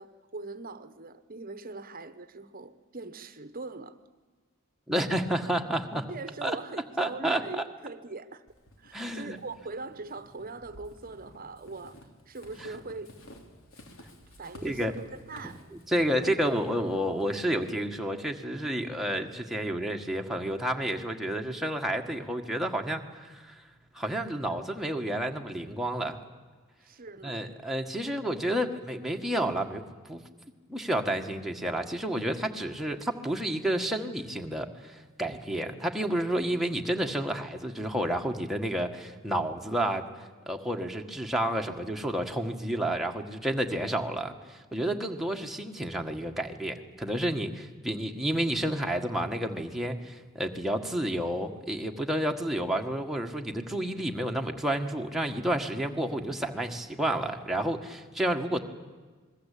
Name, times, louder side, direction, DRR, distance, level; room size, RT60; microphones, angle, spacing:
voice 1, 0.0-4.0 6.1-8.4 8.8-12.0 12.3-13.1 14.4-15.6 16.1-16.3 26.8-27.5, right 3 dB, 45° right, 1.1 m, -41 dB
voice 2, 4.9-6.0 6.4-6.6 7.0-7.6 8.9-9.4 14.6-14.9 15.9-23.6 23.9-26.2 27.2-29.8 30.1-30.2 30.7-40.1 40.5-58.6, right 1 dB, ahead, 1.6 m, -30 dB
Walk footsteps / Squeak, 8.5-18.1, left 1 dB, 70° left, 3.8 m, -52 dB
27.5 x 21.0 x 8.5 m
head